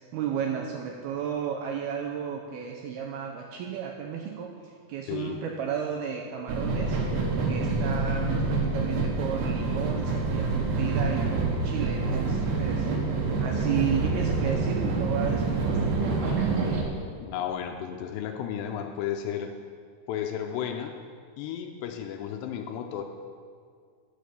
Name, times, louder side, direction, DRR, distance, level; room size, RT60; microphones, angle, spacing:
voice 1, 0.1-7.0 7.5-12.9 13.4-15.9, right 8 dB, 85° right, 1 dB, 2.2 m, -33 dB
voice 2, 5.1-5.4 17.2-19.5 20.1-21.0 21.4-23.0, left 9 dB, 85° left, 5 dB, 2.6 m, -33 dB
sound 1, 6.5-16.8, right 3 dB, 65° right, 3.6 m, -27 dB
14.0 x 7.0 x 7.0 m, 2.1 s
omnidirectional pair, 5.3 m